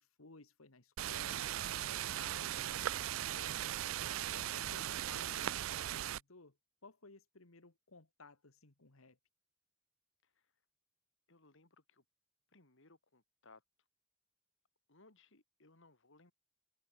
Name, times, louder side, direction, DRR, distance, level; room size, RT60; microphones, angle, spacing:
voice 1, 0.0-3.8 4.1-6.6 6.8-9.2, left 3 dB, 85° left, 2.1 m, -58 dB
sound 1, 1.0-6.2, right 12 dB, 75° right, 0.4 m, -38 dB
sound 2, 1.5-2.5, left 5 dB, 25° left, 1.3 m, -62 dB
voice 2, 11.3-12.0 12.5-13.6 14.9-16.3, left 3 dB, 65° left, 3.4 m, -65 dB
head